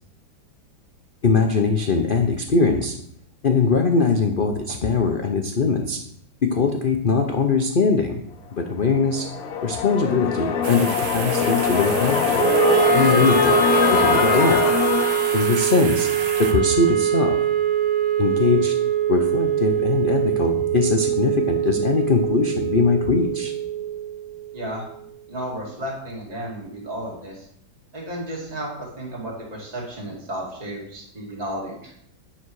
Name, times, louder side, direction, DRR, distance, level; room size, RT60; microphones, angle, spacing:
voice 1, 1.2-3.0 3.4-6.0 6.4-8.2 8.5-9.3 9.6-12.5 12.9-13.6 13.9-14.6 15.3-16.1 16.4-17.4 18.2-18.7 19.1-23.5, left 4 dB, 75° left, 4 dB, 0.4 m, -21 dB
sound 1, 8.9-16.6, left 6 dB, 60° left, 1.1 m, -23 dB
sound 2, 10.6-16.5, right 5 dB, 75° right, 1.8 m, -32 dB
Wind instrument woodwind instrument, 12.4-24.6, right 7 dB, 55° right, 0.6 m, -22 dB
voice 2, 24.5-24.9 25.3-27.5 27.9-31.9, right 1 dB, 20° right, -3 dB, 2.4 m, -33 dB
10.0 x 7.1 x 4.7 m, 0.72 s
omnidirectional pair, 2.1 m